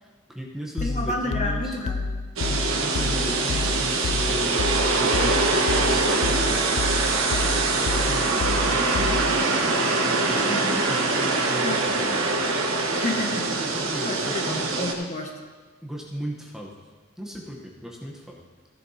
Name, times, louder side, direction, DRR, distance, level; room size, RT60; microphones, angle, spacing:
voice 1, 0.0-1.8 2.5-6.6 7.7-12.7 13.6-14.6 15.8-16.7 17.2-18.4, equal, ahead, -2 dB, 0.9 m, -36 dB
sound 1, 0.8-9.5, left 4 dB, 75° left, 0.4 m, -30 dB
voice 2, 0.8-2.0 10.5-10.8 11.6-11.9 12.9-13.5 14.0-15.3, left 1 dB, 35° left, 1 dB, 1.3 m, -30 dB
sound 2, 2.4-14.9, right 3 dB, 80° right, 1.2 m, -23 dB
15.5 x 10.5 x 2.8 m, 1.4 s
head